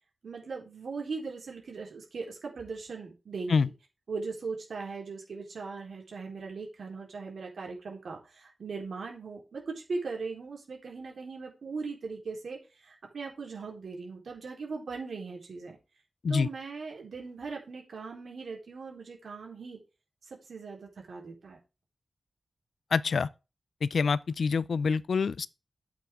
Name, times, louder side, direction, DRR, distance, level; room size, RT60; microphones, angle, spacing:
voice 1, 0.2-3.7 4.1-15.8 16.3-19.8 20.2-21.6, right 4 dB, 75° right, 4.0 m, -39 dB
voice 2, 22.9-23.3 23.8-25.5, left 5 dB, 70° left, 0.4 m, -26 dB
9.7 x 8.5 x 3.7 m
wide cardioid pair, 115°, 0 cm